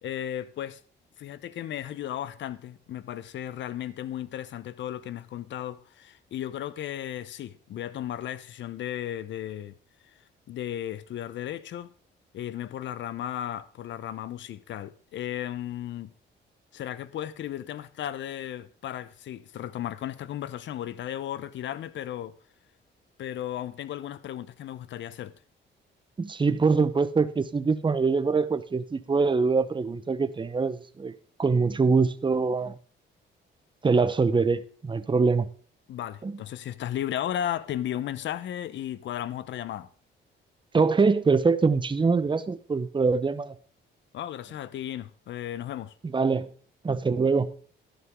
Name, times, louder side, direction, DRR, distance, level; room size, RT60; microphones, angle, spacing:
voice 1, 0.0-0.8 1.2-9.7 10.5-11.9 12.3-16.1 16.7-22.3 23.2-25.3 35.9-39.9 44.1-45.9, left 11 dB, 70° left, 0.8 m, -35 dB
voice 2, 26.2-31.1 31.4-32.8 33.8-35.5 36.2-36.4 40.7-43.5 46.1-46.5 46.8-47.5, right 4 dB, 25° right, 0.9 m, -24 dB
12.5 x 11.0 x 3.7 m
cardioid pair, 90°, 20 cm